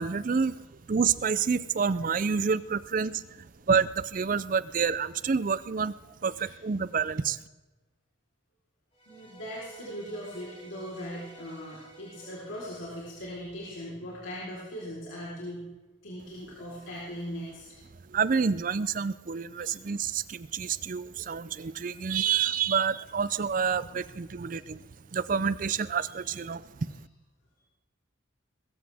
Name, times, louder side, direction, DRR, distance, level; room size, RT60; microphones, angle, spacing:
voice 1, 0.0-5.9 6.2-7.4 18.0-24.8 25.1-27.0, right 6 dB, 45° right, 16 dB, 0.4 m, -28 dB
sound 1, 8.9-14.1, right 2 dB, 35° left, 6.5 m, -53 dB
voice 2, 9.1-15.7 16.0-17.6 19.6-19.7, equal, 75° left, -6 dB, 4.0 m, -39 dB
20.5 x 15.5 x 3.5 m, 1.1 s
head